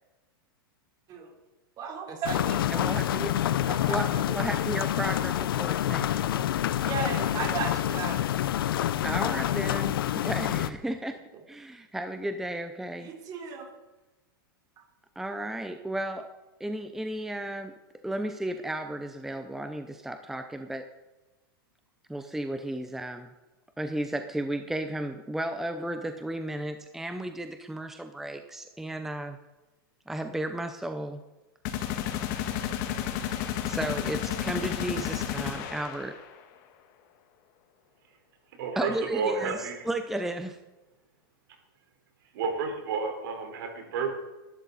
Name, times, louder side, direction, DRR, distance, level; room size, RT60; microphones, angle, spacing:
voice 1, 1.8-3.0 3.6-4.4 6.8-8.3 13.0-13.7, right 5 dB, 30° right, 1 dB, 3.8 m, -35 dB
sound 1, 2.2-10.7, left 12 dB, 75° left, 0.8 m, -27 dB
voice 2, 2.7-3.3 3.9-6.2 9.0-11.2 11.5-13.1 15.2-16.3 16.6-17.7 18.0-20.9 22.1-23.3 23.8-29.4 30.1-31.2 33.6-36.2 38.8-40.6, right 1 dB, 5° right, 7 dB, 0.7 m, -34 dB
sound 2, 31.6-36.4, left 10 dB, 50° left, 1.9 m, -32 dB
voice 3, 38.6-39.8 42.3-44.1, right 5 dB, 65° right, 3 dB, 4.5 m, -31 dB
20.0 x 12.0 x 4.2 m, 1.1 s
hypercardioid pair, 135°, 12 cm